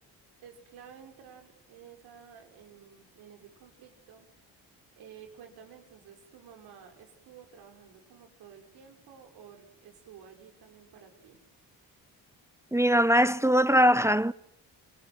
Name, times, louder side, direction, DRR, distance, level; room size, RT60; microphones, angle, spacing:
voice 1, 0.4-4.3 4.9-11.4, right 8 dB, 90° right, 6.8 m, -52 dB
voice 2, 12.7-14.3, equal, 5° right, 1.0 m, -21 dB
29.5 x 21.0 x 8.2 m
cardioid pair, 65°, 37 cm